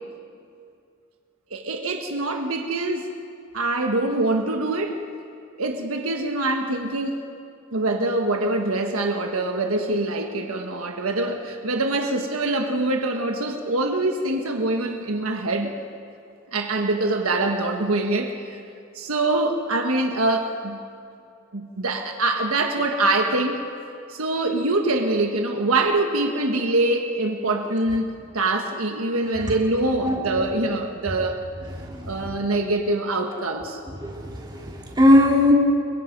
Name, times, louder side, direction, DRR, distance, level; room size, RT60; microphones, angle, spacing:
voice 1, 1.5-3.1 3.5-5.0 5.6-7.3 7.7-15.7 16.5-18.6 18.9-20.8 21.5-23.6 24.1-31.4 32.1-33.8, right 2 dB, 80° right, 4 dB, 1.5 m, -24 dB
voice 2, 31.8-32.3 34.0-35.5, left 1 dB, 20° right, -2 dB, 3.6 m, -19 dB
29.5 x 23.0 x 5.3 m, 2.5 s
head